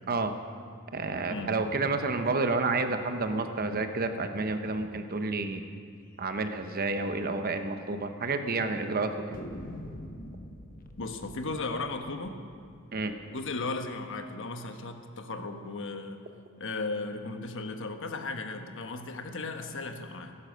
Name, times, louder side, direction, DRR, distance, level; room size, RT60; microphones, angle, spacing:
voice 1, 0.9-5.6 6.2-9.4 12.9-13.1, right 3 dB, 45° right, 8 dB, 0.9 m, -30 dB
sound 1, 6.5-6.7 7.0-7.1 7.4-7.5 8.1-8.6 9.3-14.1, left 1 dB, 40° left, 1.0 m, -46 dB
voice 2, 11.0-12.4 13.3-16.2 16.6-20.4, left 3 dB, 65° left, 6 dB, 1.1 m, -36 dB
16.0 x 11.5 x 6.4 m, 2.1 s
head